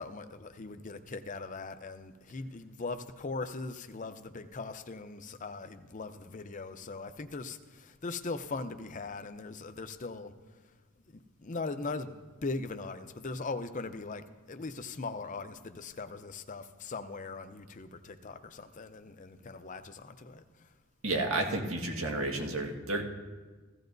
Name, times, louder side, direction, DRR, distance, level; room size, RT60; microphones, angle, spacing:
voice 1, 0.0-10.3 11.1-20.7, left 3 dB, 35° left, 9 dB, 0.6 m, -40 dB
voice 2, 21.0-23.0, right 2 dB, 80° right, 2 dB, 1.7 m, -31 dB
16.0 x 14.0 x 2.6 m, 1.4 s
head